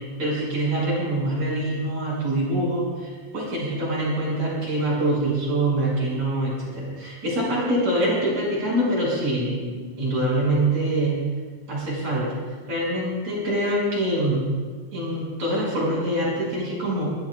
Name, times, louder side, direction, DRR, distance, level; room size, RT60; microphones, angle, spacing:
voice 1, 0.2-11.2 11.7-12.4 12.7-14.5 14.9-17.1, right 1 dB, 35° right, -5 dB, 7.3 m, -24 dB
23.5 x 20.0 x 2.4 m, 1.5 s
omnidirectional pair, 5.3 m